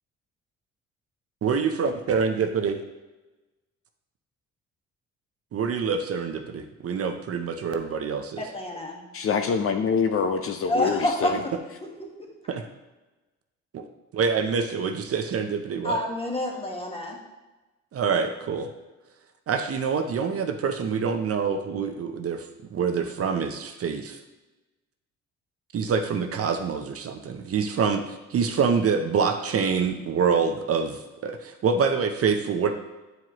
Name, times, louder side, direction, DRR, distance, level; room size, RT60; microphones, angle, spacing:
voice 1, 1.4-2.8 5.5-8.4 11.3-11.4 12.5-12.6 13.7-13.9 14.1-16.0 17.9-18.7 19.5-24.2 25.7-32.7, right 6 dB, 50° right, 6 dB, 0.7 m, -26 dB
voice 2, 8.4-9.1 10.7-11.4 12.0-12.3 15.8-17.2, left 1 dB, 20° left, -1 dB, 1.5 m, -28 dB
voice 3, 9.1-11.4, left 6 dB, 50° left, 6 dB, 0.5 m, -25 dB
9.2 x 4.7 x 3.0 m, 1.1 s
cardioid pair, 90°, 30 cm